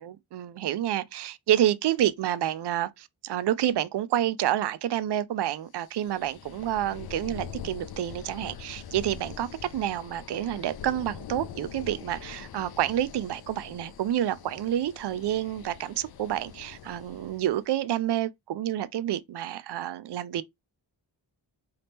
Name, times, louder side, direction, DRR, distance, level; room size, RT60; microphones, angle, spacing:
voice 1, 0.0-20.4, right 12 dB, 65° right, 0.5 m, -29 dB
sound 1, 5.8-17.6, left 8 dB, 60° left, 0.5 m, -44 dB
3.9 x 2.8 x 3.4 m
wide cardioid pair, 90°, 44 cm